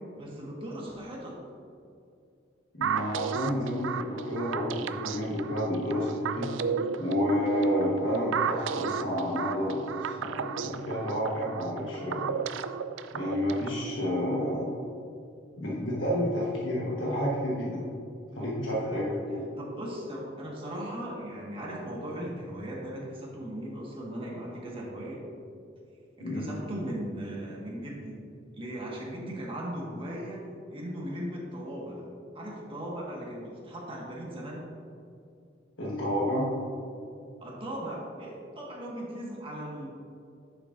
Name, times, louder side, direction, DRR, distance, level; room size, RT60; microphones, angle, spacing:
voice 1, 0.1-1.4 18.8-19.2 19.6-25.2 26.2-28.2 28.5-32.1 32.3-34.6 37.4-39.9, right 1 dB, 30° right, -4 dB, 1.7 m, -38 dB
voice 2, 2.7-6.5 7.0-12.4 13.1-14.7 15.6-17.9 18.3-19.4 26.2-26.5 35.8-36.5, equal, 80° left, -5 dB, 1.4 m, -30 dB
sound 1, 2.8-13.8, right 7 dB, 85° right, 0.4 m, -34 dB
9.6 x 7.0 x 2.6 m, 2.5 s
head